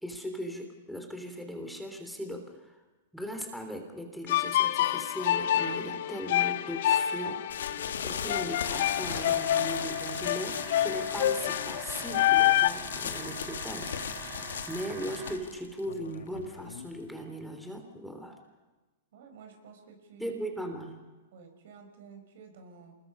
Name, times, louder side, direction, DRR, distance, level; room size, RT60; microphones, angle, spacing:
voice 1, 0.0-2.8 3.1-7.4 8.0-14.3 14.7-18.4 20.2-21.1, equal, ahead, 4 dB, 3.4 m, -38 dB
sound 1, 4.3-12.7, left 12 dB, 65° left, 0.7 m, -27 dB
sound 2, 7.5-17.1, left 8 dB, 80° left, 1.5 m, -38 dB
sound 3, 8.5-15.3, right 5 dB, 35° right, 7.6 m, -44 dB
voice 2, 19.1-20.3 21.3-23.0, right 5 dB, 65° right, 5 dB, 5.1 m, -52 dB
27.0 x 21.0 x 5.6 m, 1.2 s
hypercardioid pair, 115°, 0 cm